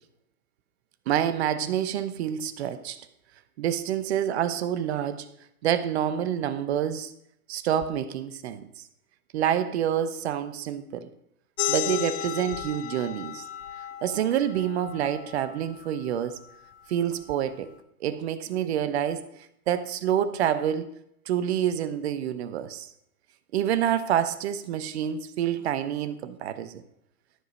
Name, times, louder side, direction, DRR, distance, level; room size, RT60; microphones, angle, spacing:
voice 1, 1.1-3.0 3.6-5.3 5.6-7.1 7.5-8.7 9.3-11.1 11.7-13.4 14.0-16.4 16.9-17.7 18.0-19.2 19.7-20.9 21.3-22.9 23.5-26.8, right 10 dB, 45° right, 12 dB, 1.0 m, -27 dB
sound 1, 11.6-16.7, left 12 dB, 45° left, 0.9 m, -34 dB
12.5 x 5.1 x 6.2 m, 0.75 s
hypercardioid pair, 130°, 45 cm